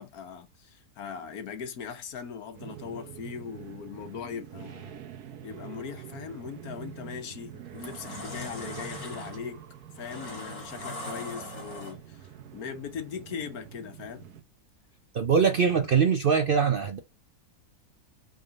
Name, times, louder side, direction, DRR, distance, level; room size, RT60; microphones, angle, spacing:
voice 1, 0.0-5.1 5.4-9.6 10.0-12.3 12.5-14.3, left 7 dB, 75° left, 1.5 m, -40 dB
sound 1, 2.5-14.4, right 10 dB, 85° right, 1.4 m, -46 dB
sound 2, 6.9-7.1 7.6-12.3, left 1 dB, 60° left, 2.7 m, -40 dB
voice 2, 15.1-17.0, right 6 dB, 60° right, 0.6 m, -22 dB
5.4 x 3.8 x 5.2 m
omnidirectional pair, 1.6 m